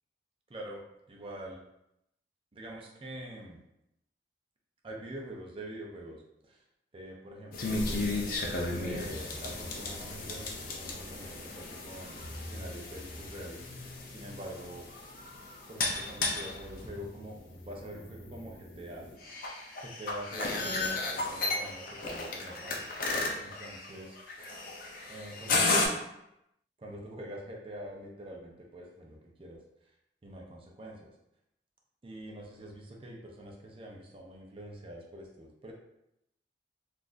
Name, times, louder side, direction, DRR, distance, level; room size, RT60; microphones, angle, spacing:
voice 1, 0.5-0.8 1.1-1.6 2.5-3.6 4.8-6.6 6.9-8.0 8.8-14.9 15.7-19.1 19.8-22.9 23.4-24.2 25.1-26.0 26.8-29.6 30.2-31.1 32.0-35.7, right 1 dB, 30° right, -1 dB, 0.5 m, -45 dB
sound 1, 7.5-25.9, left 2 dB, 55° left, 0.5 m, -34 dB
3.9 x 2.5 x 2.4 m, 0.84 s
head